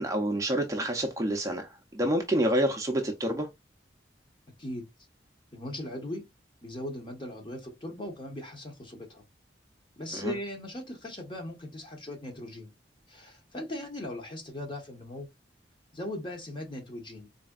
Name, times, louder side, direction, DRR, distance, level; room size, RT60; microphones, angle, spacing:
voice 1, 0.0-3.5 10.1-10.3, right 1 dB, 15° right, 0.5 m, -28 dB
voice 2, 5.5-6.2 6.6-9.2 10.0-12.7 13.1-15.3 15.9-17.3, left 1 dB, 25° left, 1.0 m, -39 dB
4.1 x 3.3 x 2.3 m
head